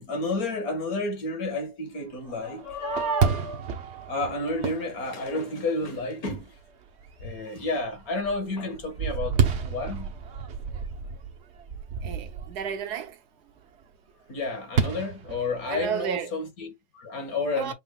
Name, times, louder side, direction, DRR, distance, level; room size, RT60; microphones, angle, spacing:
voice 1, 0.0-3.6 4.1-6.6 7.2-10.1 14.3-17.7, left 2 dB, 65° left, 1.9 m, -31 dB
Fireworks, 2.3-5.9 6.4-6.5 7.0-7.4 7.8-12.7 14.8-16.1, right 6 dB, 50° right, 1.0 m, -30 dB
voice 2, 12.0-13.2 15.7-16.3 17.5-17.7, right 8 dB, 90° right, 1.4 m, -32 dB
5.7 x 3.8 x 2.3 m
omnidirectional pair, 1.7 m